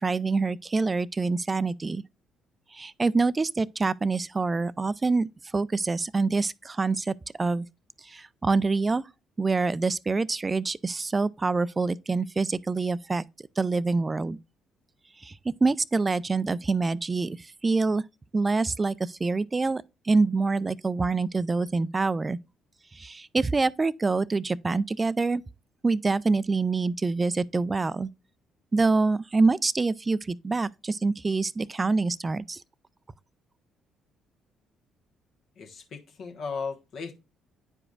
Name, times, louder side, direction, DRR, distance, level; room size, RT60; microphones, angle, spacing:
voice 1, 0.0-2.0 2.7-5.3 5.5-7.7 8.0-9.0 9.4-13.2 13.6-14.4 15.2-18.0 18.3-22.4 22.9-25.4 25.8-28.1 28.7-32.6, right 3 dB, 30° right, 0.3 m, -26 dB
voice 2, 35.6-37.1, left 5 dB, 60° left, 1.2 m, -36 dB
9.5 x 4.9 x 2.4 m
hypercardioid pair, 50°, 0 cm